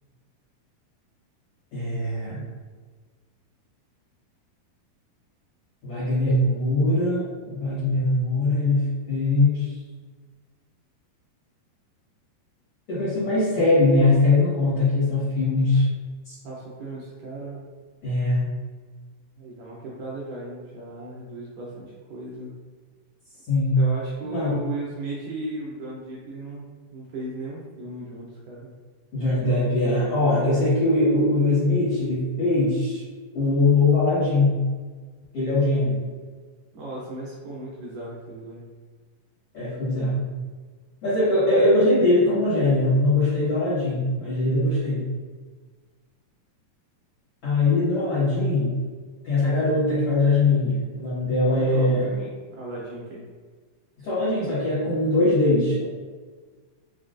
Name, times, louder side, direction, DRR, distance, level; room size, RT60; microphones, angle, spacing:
voice 1, 1.7-2.4 5.8-9.8 12.9-15.9 16.3-16.4 18.0-18.5 23.5-23.8 24.2-24.6 29.1-33.0 33.3-34.6 35.3-36.0 39.5-40.3 41.0-45.1 47.4-48.7 49.2-52.0 54.0-55.8, left 2 dB, 55° left, -11 dB, 1.7 m, -21 dB
voice 2, 16.4-17.6 19.4-22.5 23.8-28.7 30.5-30.9 36.7-38.6 51.4-53.2, right 2 dB, 75° right, -5 dB, 2.0 m, -36 dB
5.8 x 2.3 x 2.5 m, 1.4 s
omnidirectional pair, 4.3 m